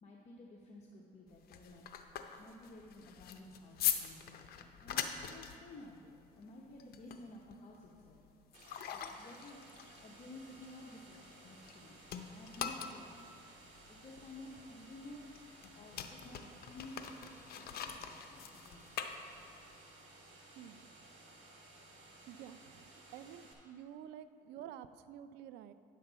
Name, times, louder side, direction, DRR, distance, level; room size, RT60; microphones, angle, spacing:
voice 1, 0.0-1.8 2.4-8.2 8.9-9.6 10.0-13.4 13.9-15.2 15.8-18.9, left 1 dB, 40° left, -2 dB, 0.9 m, -53 dB
sound 1, 1.3-11.8 12.1-19.8, left 9 dB, 65° left, 0.6 m, -43 dB
sound 2, 8.5-23.5, right 2 dB, 45° right, 1.6 m, -58 dB
voice 2, 20.6-20.9 22.3-22.8 23.1-25.7, right 10 dB, 85° right, 13 dB, 0.4 m, -50 dB
9.9 x 7.4 x 4.1 m, 2.4 s
cardioid pair, 110°, 17 cm